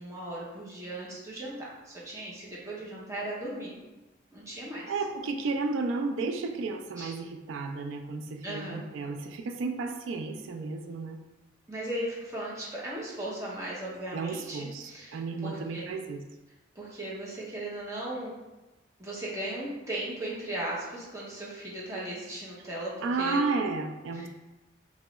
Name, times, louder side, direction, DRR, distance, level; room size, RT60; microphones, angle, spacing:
voice 1, 0.0-3.7 4.3-4.9 7.0-7.1 8.4-8.8 11.7-15.9 16.8-18.3 19.0-23.4 24.1-24.3, right 1 dB, 15° right, -6 dB, 0.6 m, -37 dB
voice 2, 4.9-11.2 14.1-16.2 23.0-24.3, right 3 dB, 85° right, 6 dB, 0.3 m, -32 dB
2.9 x 2.2 x 3.0 m, 1.1 s
head